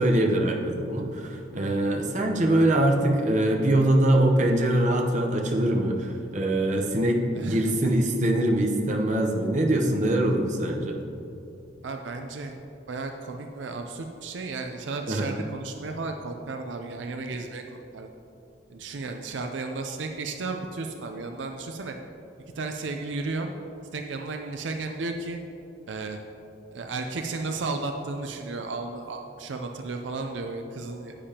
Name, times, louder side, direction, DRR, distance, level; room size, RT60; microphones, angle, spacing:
voice 1, 0.0-11.0 15.1-15.3, right 1 dB, 40° right, 2 dB, 0.8 m, -23 dB
voice 2, 7.3-7.7 11.8-12.5 12.9-17.6 17.9-18.1 18.7-21.9 22.6-23.5 23.9-25.4 25.9-26.2 26.7-31.2, right 3 dB, 75° right, 4 dB, 0.5 m, -33 dB
9.9 x 8.6 x 2.9 m, 2.7 s
head